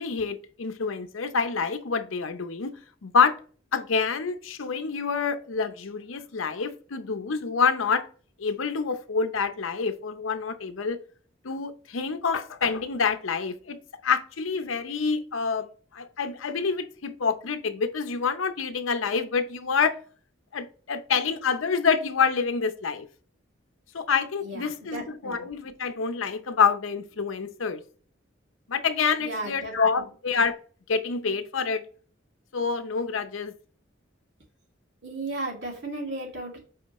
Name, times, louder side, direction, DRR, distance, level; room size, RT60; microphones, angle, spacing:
voice 1, 0.0-2.8 3.0-3.4 3.7-8.0 8.4-11.0 11.4-13.8 14.0-15.7 15.9-19.9 20.5-23.1 23.9-27.8 28.7-30.6 30.9-31.8 32.5-33.5, left 5 dB, 90° left, 0.7 m, -27 dB
voice 2, 24.4-25.5 29.2-30.0 35.0-36.6, right 2 dB, 60° right, 2.7 m, -35 dB
7.8 x 4.3 x 3.0 m
head